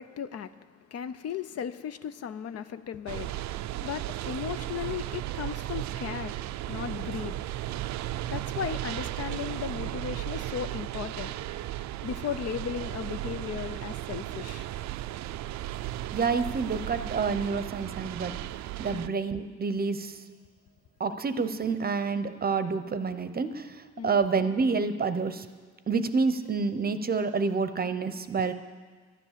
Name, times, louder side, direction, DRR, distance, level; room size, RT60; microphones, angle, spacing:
voice 1, 0.0-6.4 6.7-7.4 8.3-11.3 12.0-14.7 18.9-19.1 24.0-24.2, left 8 dB, 55° left, 13 dB, 0.6 m, -36 dB
sound 1, 3.1-19.1, right 14 dB, 70° right, 0.4 m, -35 dB
voice 2, 16.1-18.4 18.8-20.1 21.0-23.7 24.0-25.4 25.9-28.5, right 4 dB, 30° right, 11 dB, 0.7 m, -28 dB
11.5 x 9.8 x 7.4 m, 1.5 s
cardioid pair, 90°, 30 cm